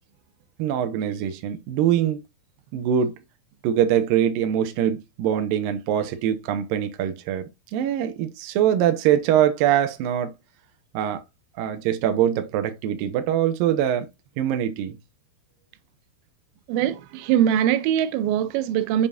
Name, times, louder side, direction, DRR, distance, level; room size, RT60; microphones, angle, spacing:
voice 1, 0.6-2.2 2.7-3.2 3.6-10.3 10.9-11.2 11.6-14.1 14.4-15.0, right 10 dB, 70° right, 2.3 m, -23 dB
voice 2, 16.7-19.1, right 10 dB, 90° right, 2.9 m, -22 dB
7.2 x 5.1 x 2.6 m
omnidirectional pair, 5.1 m